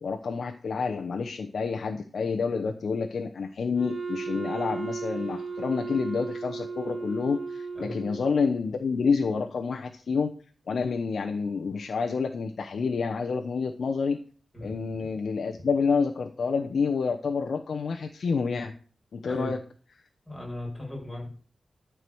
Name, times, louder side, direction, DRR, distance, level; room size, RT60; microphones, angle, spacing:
voice 1, 0.0-10.3 10.7-14.2 14.6-18.7 19.1-19.6, left 5 dB, 70° left, 4 dB, 0.9 m, -28 dB
Wind instrument woodwind instrument, 3.7-8.5, right 4 dB, 40° right, 2.1 m, -35 dB
voice 2, 19.3-19.6 20.3-21.3, left 1 dB, 15° left, -3 dB, 6.9 m, -37 dB
12.5 x 4.8 x 7.8 m, 0.41 s
wide cardioid pair, 95°, 0 cm